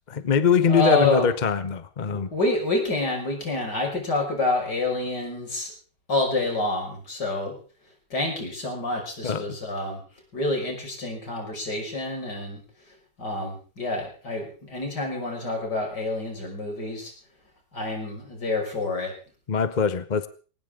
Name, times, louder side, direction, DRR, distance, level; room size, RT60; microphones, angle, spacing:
voice 1, 0.1-2.3 9.2-9.4 19.5-20.3, left 6 dB, 35° left, 14 dB, 0.8 m, -22 dB
voice 2, 0.7-1.3 2.1-5.7 6.1-7.5 8.1-10.0 10.3-12.6 13.2-17.1 17.7-19.1, left 2 dB, 70° left, 2 dB, 6.2 m, -27 dB
21.0 x 18.5 x 3.7 m, 0.38 s
omnidirectional pair, 1.9 m